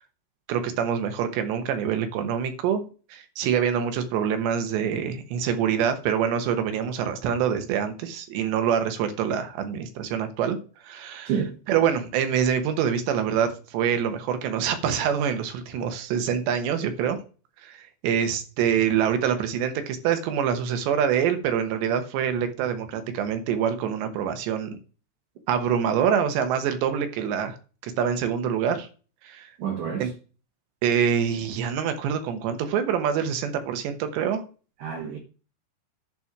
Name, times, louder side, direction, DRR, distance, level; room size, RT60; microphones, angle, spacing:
voice 1, 0.5-2.8 3.1-10.6 10.8-11.3 11.7-17.2 17.6-24.8 25.5-27.6 27.8-28.9 29.2-29.5 30.0-30.1 30.8-34.4, right 8 dB, 80° right, 3.4 m, -25 dB
voice 2, 29.6-30.1 34.8-35.2, right 7 dB, 60° right, 2.4 m, -28 dB
11.0 x 4.4 x 6.0 m
omnidirectional pair, 5.1 m